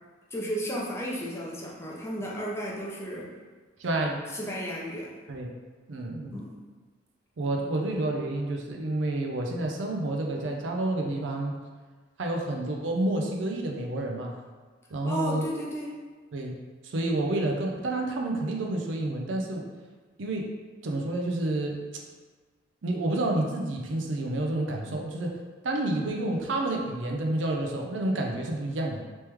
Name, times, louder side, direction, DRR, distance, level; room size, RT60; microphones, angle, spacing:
voice 1, 0.3-3.3 4.3-5.1 6.3-6.6 15.0-15.9, equal, 15° left, -4 dB, 0.5 m, -33 dB
voice 2, 3.8-4.2 5.3-5.5 5.9-6.4 7.4-11.5 12.2-14.3 14.9-15.5 16.3-16.5 16.8-19.6 20.2-20.5 20.8-21.8 22.8-25.4 25.6-29.0, right 2 dB, 75° right, 1 dB, 0.5 m, -29 dB
3.1 x 3.1 x 3.3 m, 1.4 s
head